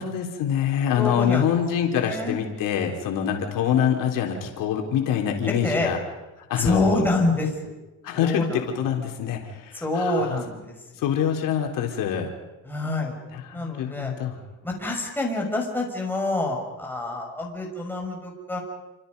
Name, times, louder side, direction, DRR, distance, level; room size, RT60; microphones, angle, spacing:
voice 1, 0.0-6.0 6.5-7.0 8.0-10.4 11.0-12.3 13.5-14.4, left 9 dB, 75° left, 2 dB, 3.8 m, -25 dB
voice 2, 0.9-1.5 1.9-2.4 5.6-5.9 6.6-7.7 8.1-8.6 9.7-11.1 12.6-13.2 13.5-14.1 14.6-18.6, left 2 dB, 5° left, -1 dB, 6.3 m, -27 dB
29.0 x 26.5 x 5.5 m, 1.1 s
cardioid pair, 135°, 33 cm